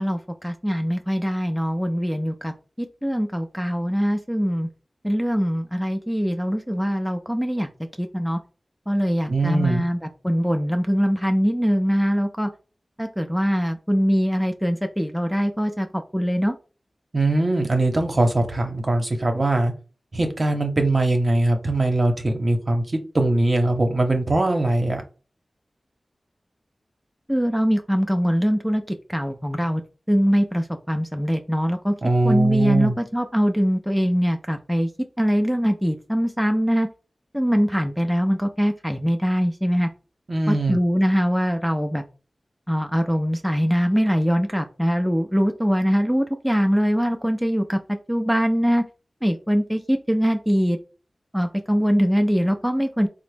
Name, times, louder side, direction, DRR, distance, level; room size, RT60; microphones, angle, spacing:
voice 1, 0.0-4.7 5.0-7.7 8.0-8.4 8.9-12.5 13.0-16.6 27.3-28.8 29.1-29.8 30.1-31.9 32.2-34.9 35.2-36.9 37.3-39.9 40.5-42.0 42.7-48.8 49.2-50.8 51.3-53.1, equal, ahead, 5 dB, 0.4 m, -22 dB
voice 2, 9.3-9.8 17.1-19.7 20.1-22.8 23.1-25.0 32.0-32.9 40.3-40.8, right 2 dB, 55° right, 4 dB, 0.8 m, -21 dB
3.6 x 2.0 x 3.3 m, 0.35 s
cardioid pair, 45°, 0 cm